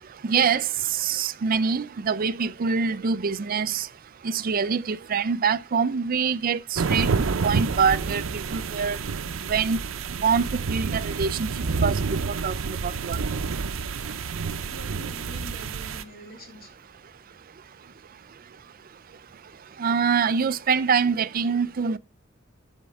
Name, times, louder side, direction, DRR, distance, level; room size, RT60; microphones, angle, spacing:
voice 1, 0.2-3.9 4.2-7.1 7.4-8.2 8.5-9.0 9.4-9.8 10.2-11.5 11.8-12.0 12.3-13.2 19.8-22.0, right 6 dB, 45° right, 0.4 m, -25 dB
sound 1, 6.8-16.0, right 5 dB, 90° right, 0.6 m, -28 dB
voice 2, 14.7-16.7, equal, 50° left, 2.6 m, -44 dB
12.5 x 4.4 x 6.2 m
head